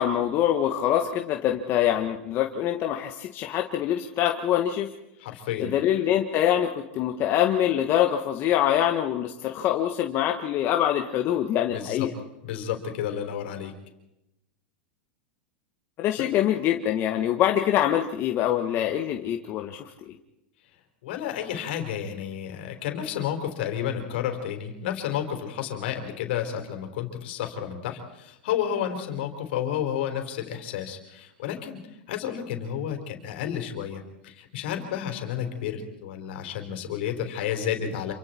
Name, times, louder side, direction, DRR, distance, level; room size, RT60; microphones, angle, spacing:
voice 1, 0.0-4.9 5.6-12.1 16.0-20.1, left 11 dB, 40° left, 3 dB, 1.4 m, -24 dB
voice 2, 5.2-5.7 11.7-12.1 12.4-13.7 21.0-31.8 32.1-38.1, left 9 dB, 70° left, 5 dB, 4.4 m, -31 dB
27.5 x 24.0 x 4.5 m, 0.90 s
supercardioid pair, 130°, 6 cm